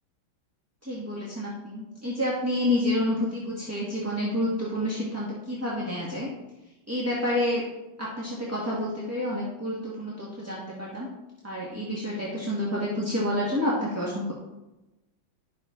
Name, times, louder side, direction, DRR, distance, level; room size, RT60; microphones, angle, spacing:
voice 1, 0.8-6.3 6.9-7.6 8.0-11.1 11.4-14.3, left 1 dB, 10° right, -6 dB, 1.2 m, -29 dB
11.5 x 6.4 x 3.7 m, 1.0 s
omnidirectional pair, 2.2 m